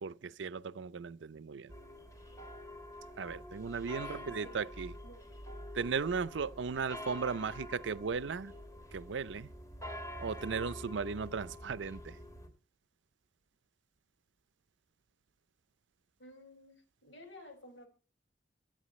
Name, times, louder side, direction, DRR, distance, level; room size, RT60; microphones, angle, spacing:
voice 1, 0.0-1.7 3.2-4.9 5.7-8.5 8.9-9.5 10.2-12.2, right 5 dB, 80° right, 0.5 m, -36 dB
sound 1, 1.7-12.5, equal, 20° left, 2.9 m, -47 dB
voice 2, 4.0-4.7 5.0-5.4 16.2-17.9, left 1 dB, 90° left, 5.3 m, -53 dB
24.0 x 8.9 x 3.1 m
head